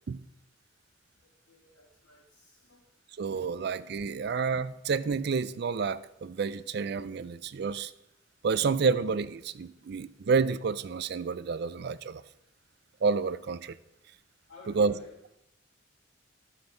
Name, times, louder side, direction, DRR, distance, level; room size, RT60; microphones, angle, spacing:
voice 1, 1.5-2.8 14.5-15.4, left 2 dB, 70° left, -7 dB, 1.9 m, -55 dB
voice 2, 3.2-7.9 8.4-12.2 13.0-13.8 14.7-15.0, right 5 dB, 55° right, 15 dB, 0.4 m, -29 dB
13.0 x 5.8 x 3.9 m, 0.86 s
head